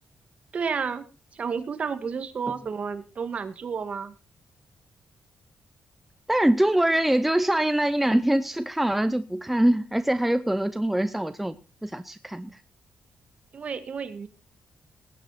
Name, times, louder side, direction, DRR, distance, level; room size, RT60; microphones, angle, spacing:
voice 1, 0.5-1.1 1.3-4.1 13.5-14.3, right 6 dB, 45° right, 9 dB, 1.8 m, -31 dB
voice 2, 6.3-11.6 11.8-12.6, right 1 dB, 5° right, 11 dB, 0.7 m, -23 dB
19.5 x 9.5 x 4.1 m, 0.31 s
cardioid pair, 135°, 3 cm